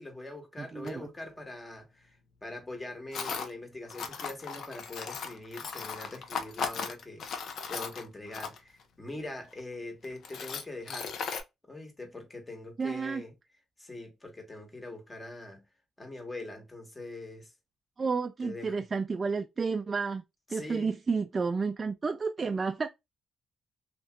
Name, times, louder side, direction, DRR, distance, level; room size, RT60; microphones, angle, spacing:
voice 1, 0.0-11.1 11.7-13.3 13.8-15.6 16.0-17.5 18.4-18.8 20.5-21.0, left 2 dB, 20° left, 1.2 m, -43 dB
voice 2, 0.6-1.1 12.8-13.2 18.0-20.2 20.5-22.9, right 4 dB, 35° right, 0.3 m, -31 dB
Tools, 0.8-0.9 3.1-3.5 3.9-8.8 9.5-9.6 10.0-11.4, left 6 dB, 65° left, 0.6 m, -37 dB
2.9 x 2.7 x 2.2 m
cardioid pair, 90°, 0 cm